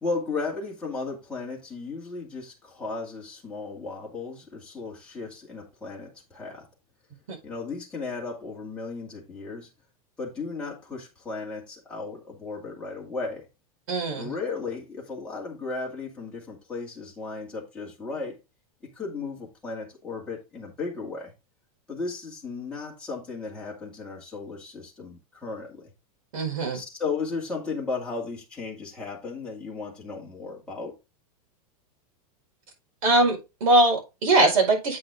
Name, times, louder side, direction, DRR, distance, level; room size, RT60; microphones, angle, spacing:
voice 1, 0.0-6.7 7.4-9.7 10.2-13.5 14.1-18.4 18.8-21.3 21.9-25.9 26.7-31.0, left 4 dB, 5° left, 2.3 m, -35 dB
voice 2, 13.9-14.3 26.3-26.8 33.0-35.0, right 2 dB, 65° right, 5.0 m, -21 dB
8.4 x 5.8 x 3.6 m
supercardioid pair, 175°, 19 cm